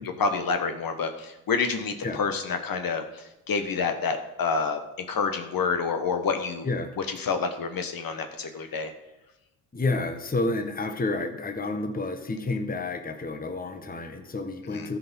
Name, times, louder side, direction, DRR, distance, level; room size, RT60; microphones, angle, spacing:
voice 1, 0.2-3.0 3.5-4.8 5.1-6.7 7.1-8.9 14.7-14.9, left 5 dB, 45° left, 7 dB, 1.4 m, -28 dB
voice 2, 9.7-15.0, left 2 dB, 15° left, 7 dB, 1.3 m, -30 dB
14.5 x 5.0 x 5.5 m, 0.94 s
hypercardioid pair, 60°, 50 cm